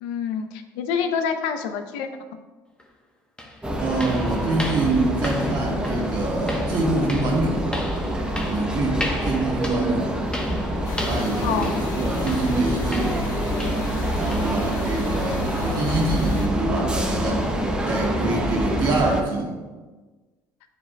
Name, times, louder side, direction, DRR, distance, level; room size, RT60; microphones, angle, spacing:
voice 1, 0.0-2.4 11.4-11.9, left 6 dB, 90° left, 7 dB, 0.6 m, -27 dB
sound 1, 2.8-2.9 3.4-14.0 14.3-14.6 15.0-15.1 15.6-15.7 16.3-16.4, left 1 dB, 10° left, 1.0 m, -35 dB
sound 2, 3.6-19.2, equal, 10° right, 0.8 m, -26 dB
voice 2, 3.8-7.8 8.5-10.1 11.0-13.2 14.2-17.5 17.9-19.5, right 2 dB, 60° right, -2 dB, 1.7 m, -25 dB
sound 3, 10.8-16.5, left 2 dB, 45° left, 1.4 m, -33 dB
8.8 x 4.9 x 2.3 m, 1.3 s
supercardioid pair, 95°, 9 cm